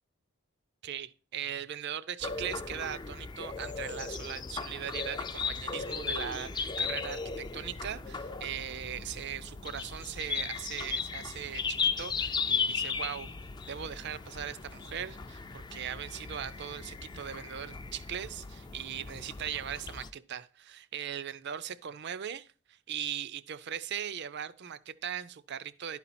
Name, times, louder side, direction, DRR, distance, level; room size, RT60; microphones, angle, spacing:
voice 1, 0.8-13.3 13.7-26.0, right 9 dB, 50° right, 0.4 m, -39 dB
sound 1, 2.2-20.1, left 5 dB, 20° left, 0.3 m, -36 dB
11.5 x 4.3 x 4.2 m
head